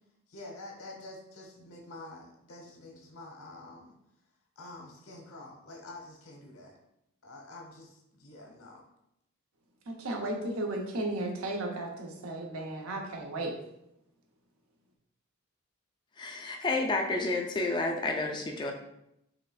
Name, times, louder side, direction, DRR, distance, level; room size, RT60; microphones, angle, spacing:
voice 1, 0.3-3.9 4.6-6.8 7.2-8.8, left 2 dB, 85° left, 1 dB, 1.0 m, -47 dB
voice 2, 9.9-13.5, right 2 dB, 80° right, 2 dB, 0.8 m, -34 dB
voice 3, 16.2-18.7, left 2 dB, 20° left, 2 dB, 0.3 m, -30 dB
4.8 x 3.3 x 2.3 m, 0.82 s
head